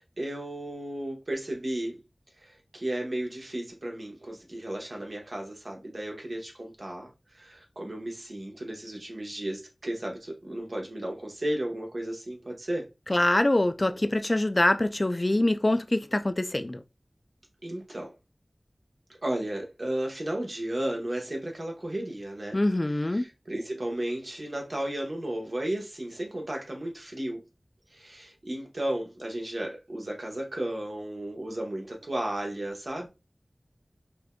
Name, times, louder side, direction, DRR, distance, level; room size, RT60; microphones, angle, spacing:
voice 1, 0.0-2.0 2.7-12.9 17.6-18.1 19.2-22.6 23.2-27.4 27.9-33.1, right 1 dB, 65° right, 1.1 m, -34 dB
voice 2, 13.1-16.8 22.5-23.3, left 1 dB, 40° left, 0.4 m, -24 dB
4.9 x 2.5 x 2.2 m
wide cardioid pair, 40°, 0 cm